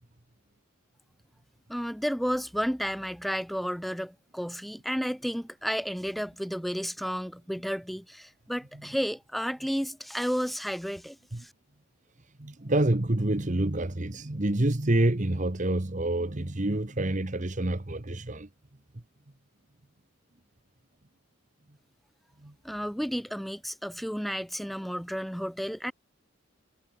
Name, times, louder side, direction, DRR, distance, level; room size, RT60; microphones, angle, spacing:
voice 1, 1.7-11.5 22.6-25.9, equal, ahead, 4.7 m, -32 dB
voice 2, 12.4-18.5 22.4-22.5, right 1 dB, 35° right, 1.2 m, -27 dB
head